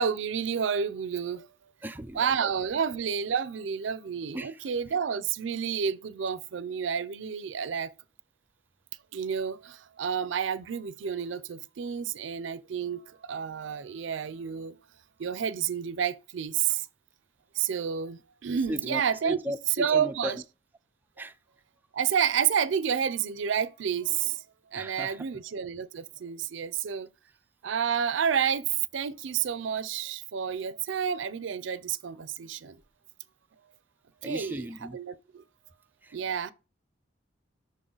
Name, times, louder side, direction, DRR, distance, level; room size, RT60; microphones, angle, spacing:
voice 1, 0.0-1.5 2.2-7.9 9.1-14.7 15.2-16.8 17.6-19.4 19.8-20.3 21.9-24.4 24.7-27.1 27.6-28.7 28.9-32.8 34.2-34.6 34.9-35.4 36.1-36.5, right 7 dB, 75° right, 0.4 m, -30 dB
voice 2, 1.8-2.6 4.3-4.7 18.7-20.4 21.2-21.4 24.7-25.3 34.2-35.0 36.0-36.2, equal, 10° right, 0.3 m, -36 dB
6.4 x 3.9 x 3.8 m
head